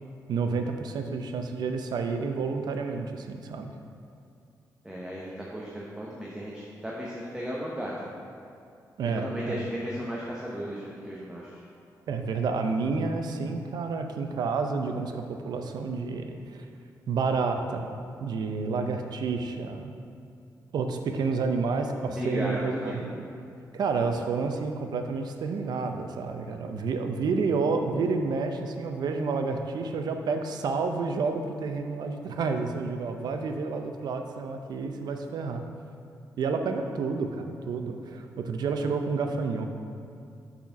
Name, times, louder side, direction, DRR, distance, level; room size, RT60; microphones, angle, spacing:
voice 1, 0.3-3.7 9.0-9.6 12.1-16.7 17.1-17.9 18.2-19.9 20.7-23.3 23.7-35.6 36.4-39.6, right 4 dB, 80° right, 5 dB, 0.6 m, -30 dB
voice 2, 4.8-8.1 9.0-11.6 22.1-23.0, equal, 10° right, -5 dB, 0.9 m, -35 dB
6.3 x 4.3 x 5.8 m, 2.4 s
cardioid pair, 95°, 7 cm